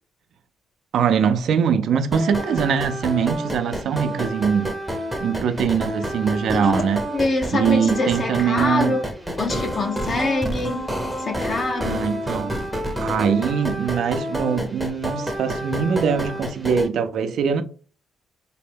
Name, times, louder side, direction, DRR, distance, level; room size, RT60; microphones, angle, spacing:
voice 1, 0.9-4.7 5.2-7.0 7.5-9.0 11.8-12.6 13.0-17.6, right 7 dB, 70° right, 0.5 m, -22 dB
sound 1, 2.1-16.9, equal, 5° right, 0.8 m, -29 dB
voice 2, 6.5-6.8 7.1-9.0 9.4-12.1, left 3 dB, 45° left, 0.8 m, -25 dB
4.1 x 2.2 x 3.4 m
cardioid pair, 90°, 0 cm